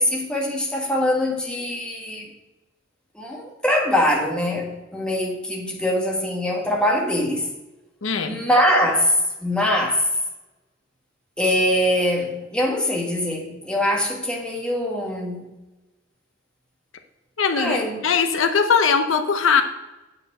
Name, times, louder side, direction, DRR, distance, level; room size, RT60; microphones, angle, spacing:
voice 1, 0.0-2.3 3.1-7.5 8.3-10.1 11.4-15.5 17.5-18.0, left 1 dB, 5° left, 1.4 m, -23 dB
voice 2, 8.0-8.4 17.4-19.6, left 6 dB, 75° left, 0.7 m, -20 dB
8.8 x 4.5 x 7.4 m
head